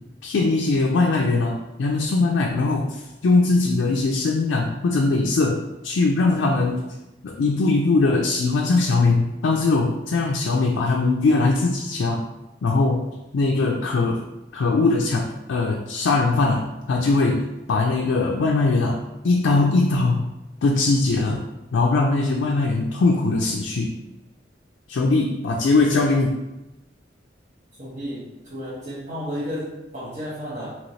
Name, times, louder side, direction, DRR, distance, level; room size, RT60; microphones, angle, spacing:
voice 1, 0.2-6.9 7.2-12.2 12.6-13.0 13.3-14.2 14.5-20.3 20.6-21.4 21.7-24.0 24.9-26.4, left 3 dB, 85° left, -1 dB, 0.4 m, -21 dB
voice 2, 27.8-30.8, equal, 40° right, -10 dB, 0.8 m, -32 dB
3.1 x 2.9 x 2.7 m, 0.99 s
head